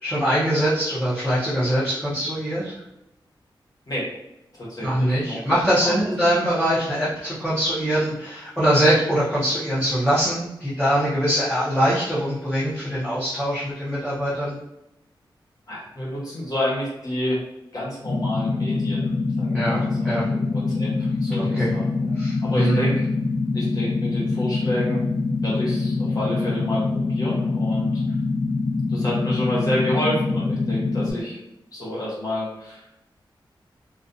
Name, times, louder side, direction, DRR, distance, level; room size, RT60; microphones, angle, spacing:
voice 1, 0.0-2.7 4.8-14.6 19.5-20.2 21.4-21.7 22.1-22.9, equal, 5° left, -10 dB, 0.6 m, -23 dB
voice 2, 4.5-5.5 5.8-6.0 15.7-17.4 17.7-19.1 19.4-20.9 21.2-22.1 22.4-23.1 23.5-25.0 25.4-28.0 28.9-31.4 31.7-32.9, left 1 dB, 45° left, -6 dB, 1.0 m, -29 dB
sound 1, 18.0-31.1, left 3 dB, 70° left, 0.8 m, -24 dB
2.4 x 2.2 x 2.6 m, 0.89 s
wide cardioid pair, 145°, 9 cm